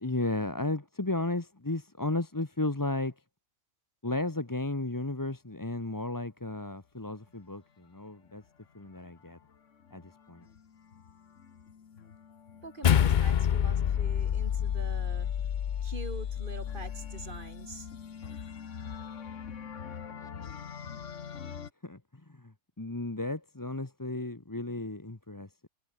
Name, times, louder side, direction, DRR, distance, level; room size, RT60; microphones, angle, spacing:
voice 1, 0.0-3.1 4.0-8.4 8.7-9.4 9.9-10.4 21.8-22.0 22.3-25.7, left 2 dB, 15° left, 1.2 m, -34 dB
sound 1, 8.0-21.7, left 7 dB, 70° left, 1.7 m, -46 dB
voice 2, 12.6-15.3 15.8-17.9, right 3 dB, 40° right, 2.4 m, -44 dB
sound 2, 12.8-17.4, left 9 dB, 50° left, 0.6 m, -28 dB
omnidirectional pair, 1.3 m